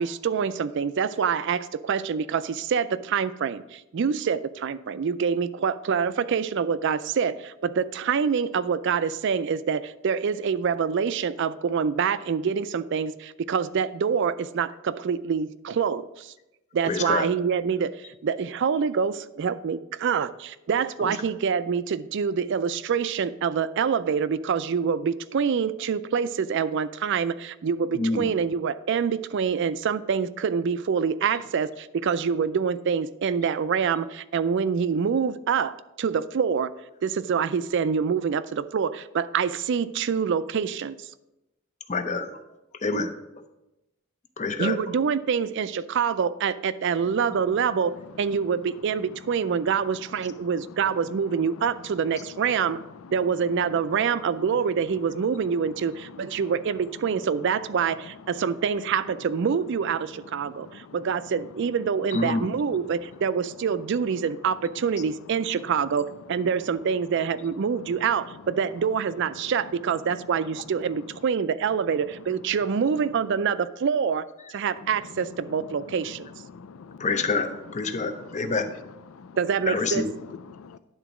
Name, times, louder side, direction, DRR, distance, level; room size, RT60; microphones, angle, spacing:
voice 1, 0.0-16.3 16.7-36.7 37.0-41.0 44.6-52.8 53.1-76.3 79.4-80.1, right 6 dB, 60° right, 15 dB, 0.4 m, -26 dB
voice 2, 16.8-17.3 21.0-21.1 27.9-28.3 41.9-42.4 42.8-43.1 44.4-44.8 62.1-62.5 77.0-78.7 79.7-80.1, left 3 dB, 35° left, 8 dB, 0.7 m, -27 dB
voice 3, 50.4-51.7 52.2-53.1 53.6-53.8 54.1-54.2 54.9-55.0 55.7-55.8 56.0-56.5 58.3-58.4 60.3-61.0 61.3-61.4 66.3-66.4 67.7-68.0 69.4-69.5 70.5-70.6 72.2-72.3 74.8-75.2 75.5-77.1 77.9-78.5 79.1-79.4 80.2-80.8, left 5 dB, 75° left, 14 dB, 0.4 m, -46 dB
10.5 x 3.9 x 6.0 m, 0.93 s
head